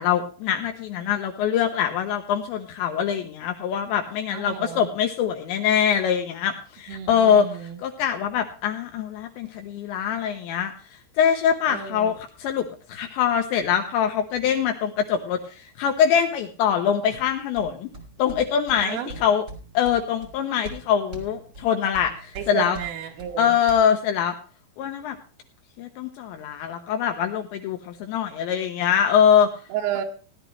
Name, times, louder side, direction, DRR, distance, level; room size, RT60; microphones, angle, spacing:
voice 1, 0.0-10.7 11.2-12.1 12.4-17.9 18.2-19.4 19.7-22.8 23.4-24.3 24.8-25.2 25.8-29.5, left 8 dB, 80° left, 5 dB, 2.7 m, -23 dB
voice 2, 4.3-4.9 6.9-7.8 11.7-12.1 18.8-19.1 22.4-23.6 29.7-30.0, right 9 dB, 85° right, 2 dB, 3.9 m, -31 dB
sound 1, 17.2-23.8, right 2 dB, 30° right, 1.4 m, -43 dB
17.0 x 11.0 x 3.1 m, 0.36 s
omnidirectional pair, 5.9 m